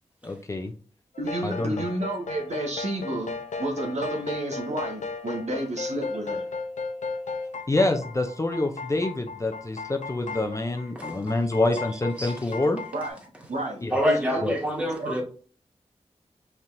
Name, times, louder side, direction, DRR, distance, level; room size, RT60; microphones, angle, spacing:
voice 1, 0.2-0.7 1.4-1.8 7.7-12.8 13.8-14.0 14.4-14.6, left 2 dB, 25° left, 0.5 m, -26 dB
sound 1, 1.1-13.1, left 4 dB, 90° left, 0.6 m, -36 dB
voice 2, 1.2-6.5 12.9-13.2 13.5-13.8 14.1-14.4 15.0-15.2, right 1 dB, 70° right, 1.2 m, -31 dB
voice 3, 13.9-15.2, equal, 10° right, 1.8 m, -26 dB
5.3 x 3.4 x 2.6 m
wide cardioid pair, 70°, 12 cm